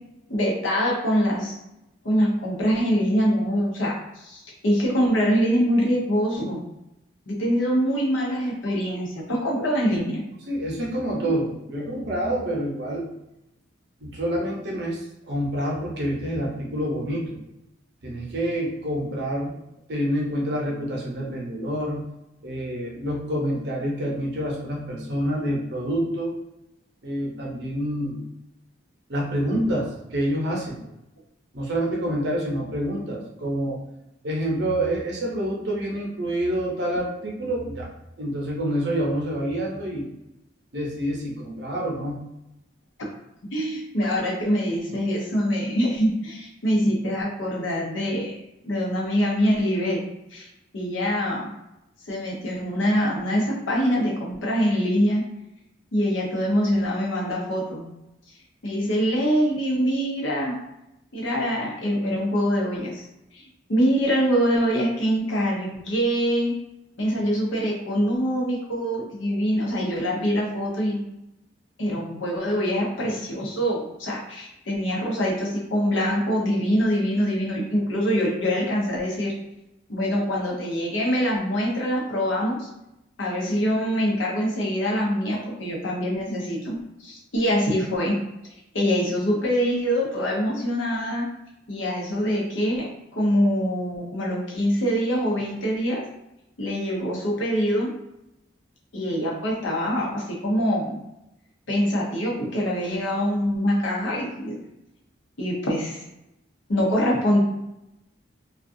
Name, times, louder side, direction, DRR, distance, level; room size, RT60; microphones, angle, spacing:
voice 1, 0.3-1.6 2.0-6.6 7.3-10.2 43.5-48.3 48.6-50.0 50.3-50.5 50.7-51.5 52.1-55.2 55.9-57.9 58.6-60.6 61.1-63.1 63.3-63.4 63.7-66.6 67.0-71.0 71.8-79.3 79.9-82.7 83.2-88.2 88.7-91.3 91.7-96.0 96.6-97.9 98.9-101.0 101.7-104.6 105.4-106.0 106.7-107.4, equal, 80° left, -3 dB, 0.8 m, -24 dB
voice 2, 10.5-13.1 14.0-17.4 18.0-19.5 19.9-22.0 22.4-26.3 27.0-28.2 29.1-30.8 31.5-33.8 34.2-37.9 38.2-40.1 40.7-42.2, equal, 60° right, -2 dB, 0.7 m, -27 dB
2.3 x 2.3 x 2.6 m, 0.89 s
head